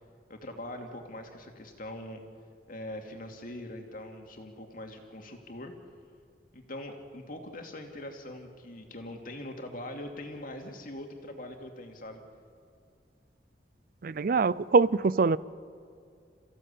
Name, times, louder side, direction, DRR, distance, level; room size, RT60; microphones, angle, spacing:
voice 1, 0.3-2.2 2.7-5.7 6.5-12.2, left 1 dB, 50° left, 2.6 m, -42 dB
voice 2, 14.0-15.4, right 4 dB, 55° right, 0.5 m, -23 dB
28.5 x 15.5 x 8.5 m
head